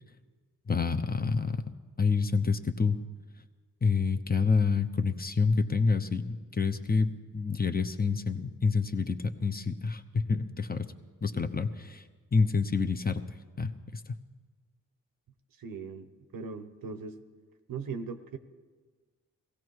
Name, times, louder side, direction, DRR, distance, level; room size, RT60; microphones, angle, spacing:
voice 1, 0.7-1.7 2.0-3.0 3.8-10.9 11.2-12.0 12.3-14.1, left 4 dB, 25° left, 7 dB, 0.9 m, -28 dB
voice 2, 15.6-16.1 16.3-17.2 17.7-18.4, right 5 dB, 80° right, 10 dB, 0.9 m, -39 dB
16.5 x 15.5 x 4.8 m, 1.4 s
cardioid pair, 50°, 33 cm